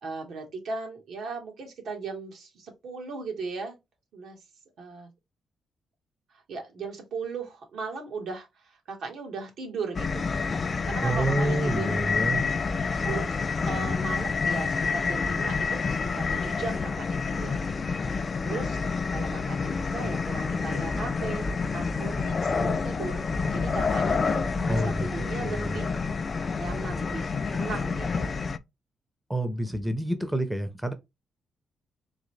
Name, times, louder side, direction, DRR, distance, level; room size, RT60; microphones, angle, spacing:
voice 1, 0.0-3.8 4.1-4.4 4.8-5.1 6.3-10.3 10.9-12.5 13.0-17.6 18.1-18.8 19.1-25.9 26.6-28.3, right 4 dB, 75° right, 1.5 m, -37 dB
sound 1, 9.9-28.6, left 4 dB, 35° left, 0.4 m, -28 dB
voice 2, 11.0-12.4 24.7-25.1 25.4-25.8 29.3-30.9, right 1 dB, 5° right, 0.6 m, -28 dB
3.9 x 3.1 x 3.2 m
cardioid pair, 115°, 0 cm